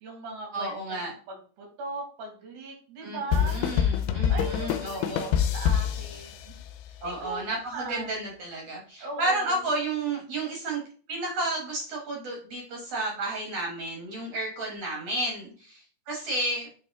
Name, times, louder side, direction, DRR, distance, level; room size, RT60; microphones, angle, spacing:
voice 1, 0.0-3.6 4.3-6.6 7.0-8.1 9.0-9.7, right 3 dB, 85° right, 1 dB, 3.9 m, -39 dB
voice 2, 0.5-1.1 3.0-5.4 7.0-10.8 11.1-16.7, right 2 dB, 55° right, 0 dB, 1.8 m, -32 dB
sound 1, 3.3-6.9, left 9 dB, 90° left, 2.6 m, -26 dB
8.8 x 3.1 x 3.5 m, 0.41 s
omnidirectional pair, 4.6 m